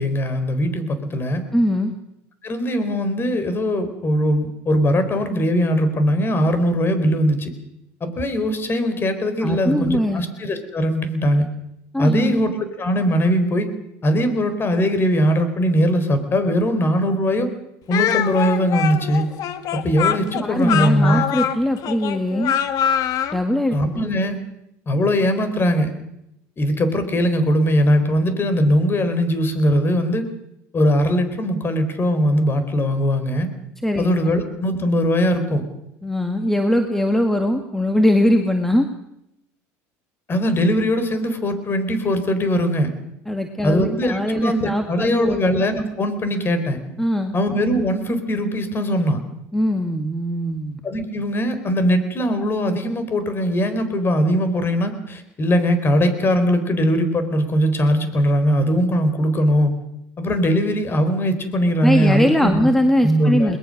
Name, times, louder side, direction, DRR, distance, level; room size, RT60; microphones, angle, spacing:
voice 1, 0.0-1.4 2.4-7.5 8.0-11.5 12.0-12.5 12.8-13.7 14.0-17.5 17.9-19.3 19.7-21.2 23.7-24.4 24.9-25.9 26.6-30.2 30.7-33.5 34.0-35.6 40.3-42.9 43.6-46.8 47.3-49.2 50.8-59.7 60.2-62.7 63.0-63.6, equal, 30° left, 10 dB, 4.3 m, -20 dB
voice 2, 1.5-1.9 9.4-10.2 11.9-12.3 20.4-22.5 23.3-24.1 33.8-34.1 36.0-38.9 43.3-45.4 47.0-47.3 49.5-50.8 61.8-63.6, left 1 dB, 5° left, 5 dB, 1.9 m, -21 dB
Speech, 17.9-23.4, left 9 dB, 55° left, 1.8 m, -23 dB
21.5 x 20.5 x 6.6 m, 0.82 s
supercardioid pair, 100°, 8 cm